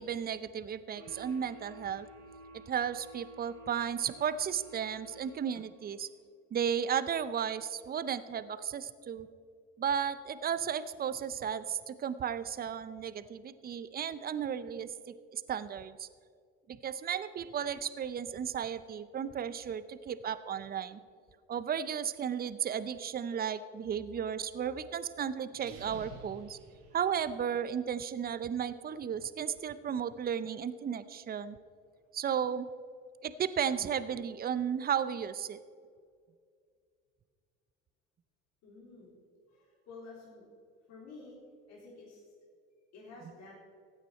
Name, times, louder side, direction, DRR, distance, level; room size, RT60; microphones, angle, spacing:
voice 1, 0.0-2.1 2.7-6.1 6.5-9.3 9.8-16.1 16.7-21.0 21.5-26.6 26.9-31.6 32.1-32.7 33.2-35.6, right 8 dB, 30° right, 14 dB, 0.7 m, -34 dB
sound 1, 1.0-5.8, right 1 dB, 75° right, 2.2 m, -52 dB
sound 2, 25.5-27.6, right 4 dB, 60° right, 2.4 m, -51 dB
voice 2, 38.6-39.1 39.5-40.5 40.9-41.4 41.7-42.2 42.9-43.5, left 3 dB, 60° left, -5 dB, 3.7 m, -51 dB
15.5 x 9.0 x 4.3 m, 2.2 s
hypercardioid pair, 75°, 31 cm